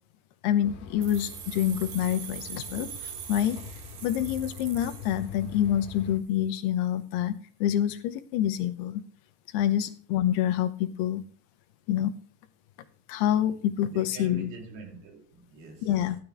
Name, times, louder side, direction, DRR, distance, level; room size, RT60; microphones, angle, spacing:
voice 1, 0.4-3.6 4.0-9.0 9.5-11.2 11.9-12.1 13.1-14.5 15.8-16.2, left 11 dB, 90° left, 2.9 m, -27 dB
sound 1, 0.6-6.2, left 7 dB, 75° left, 3.2 m, -43 dB
sound 2, 1.0-5.8, right 10 dB, 70° right, 2.3 m, -43 dB
voice 2, 13.9-16.0, right 5 dB, 85° right, 4.5 m, -44 dB
13.0 x 11.0 x 3.5 m
omnidirectional pair, 4.6 m